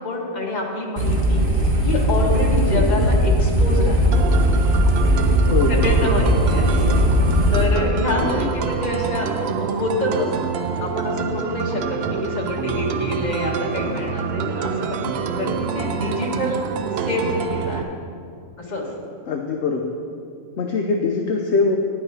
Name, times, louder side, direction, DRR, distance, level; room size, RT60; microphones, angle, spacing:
voice 1, 0.0-4.1 5.7-6.9 7.5-10.5 10.8-16.6 17.0-18.0 18.6-18.9, left 2 dB, 35° left, -2 dB, 1.5 m, -26 dB
sound 1, 1.0-7.6, equal, 45° right, 1.4 m, -18 dB
voice 2, 2.7-3.0 5.4-6.1 8.2-8.5 19.3-20.0 20.6-21.8, left 4 dB, 65° left, 3 dB, 0.9 m, -23 dB
sound 2, 4.1-17.8, right 6 dB, 60° right, 0.7 m, -26 dB
10.0 x 9.1 x 4.9 m, 2.3 s
omnidirectional pair, 1.3 m